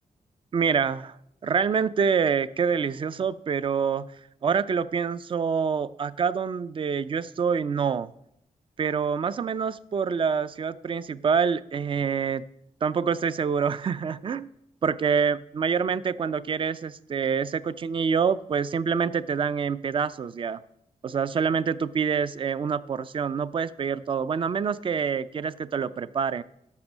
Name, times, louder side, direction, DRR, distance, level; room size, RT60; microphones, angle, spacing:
voice 1, 0.5-1.2 1.4-4.1 4.4-8.1 8.8-12.4 12.8-14.5 14.8-20.6 21.0-26.4, right 6 dB, 40° right, 16 dB, 0.4 m, -26 dB
11.5 x 6.0 x 6.0 m, 0.77 s
wide cardioid pair, 165°, 14 cm